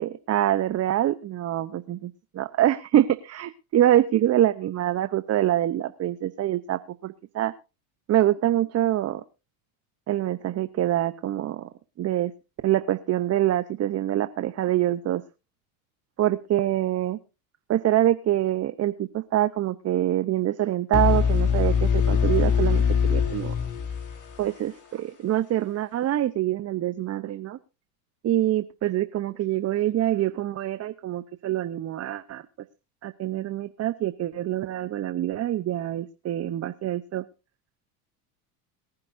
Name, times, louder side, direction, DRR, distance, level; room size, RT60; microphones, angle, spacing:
voice 1, 0.0-7.5 8.1-9.2 10.1-11.7 12.0-12.3 12.6-15.2 16.2-17.2 17.7-22.8 23.1-23.5 24.4-27.6 28.2-32.4 33.0-37.2, right 13 dB, 35° right, 12 dB, 0.8 m, -25 dB
sound 1, 20.9-24.8, left 6 dB, 40° left, 4.2 m, -23 dB
22.5 x 10.5 x 2.6 m, 0.30 s
supercardioid pair, 95°, 45 cm